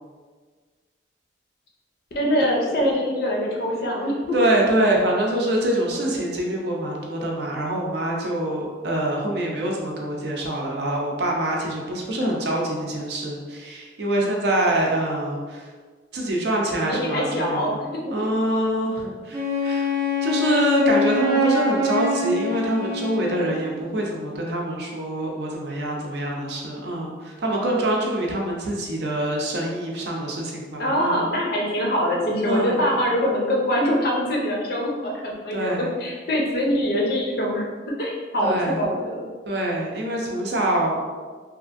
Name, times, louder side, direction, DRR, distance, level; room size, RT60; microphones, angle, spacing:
voice 1, 2.2-4.4 16.8-18.3 27.5-27.9 30.8-37.6 38.0-39.2, equal, 55° left, -2 dB, 0.5 m, -24 dB
voice 2, 4.3-15.7 16.1-17.8 18.1-19.9 20.2-31.2 32.4-32.8 35.5-35.9 38.4-38.8 39.5-41.1, right 1 dB, 60° right, -2 dB, 0.5 m, -25 dB
Wind instrument woodwind instrument, 19.3-23.7, left 2 dB, 20° right, 0.6 m, -24 dB
2.8 x 2.5 x 2.5 m, 1.5 s
head